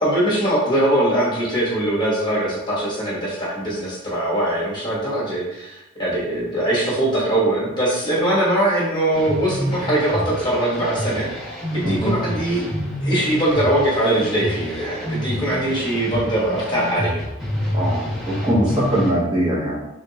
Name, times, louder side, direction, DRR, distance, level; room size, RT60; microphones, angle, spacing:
voice 1, 0.0-12.7 13.0-17.2, right 1 dB, 20° left, -7 dB, 1.1 m, -21 dB
sound 1, 9.1-19.1, equal, ahead, 1.4 m, -28 dB
voice 2, 11.8-12.2 17.7-19.8, right 1 dB, 20° right, -7 dB, 0.9 m, -21 dB
3.5 x 3.4 x 2.8 m, 0.89 s
head